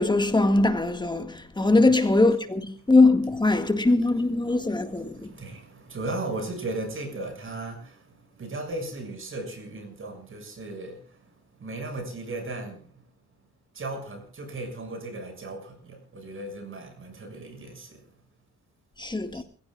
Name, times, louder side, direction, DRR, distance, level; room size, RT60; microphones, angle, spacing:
voice 1, 0.0-5.3 19.0-19.4, left 2 dB, 15° left, 1.9 m, -21 dB
voice 2, 4.4-11.3 11.6-12.9 13.7-18.0 19.3-19.4, right 2 dB, 45° right, 6.8 m, -36 dB
29.0 x 16.0 x 2.5 m
cardioid pair, 90°, 30 cm